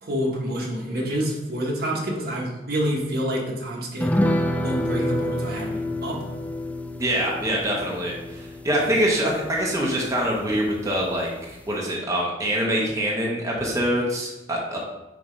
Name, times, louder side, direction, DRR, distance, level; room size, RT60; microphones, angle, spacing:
voice 1, 0.0-4.1 4.6-6.2, equal, 60° right, -1 dB, 1.3 m, -27 dB
sound 1, 4.0-10.8 11.1-11.2 11.5-11.7, left 1 dB, 10° left, 0.3 m, -28 dB
voice 2, 7.0-11.3 11.7-14.8, equal, 20° right, -3 dB, 1.0 m, -24 dB
6.6 x 2.9 x 5.1 m, 1.0 s
head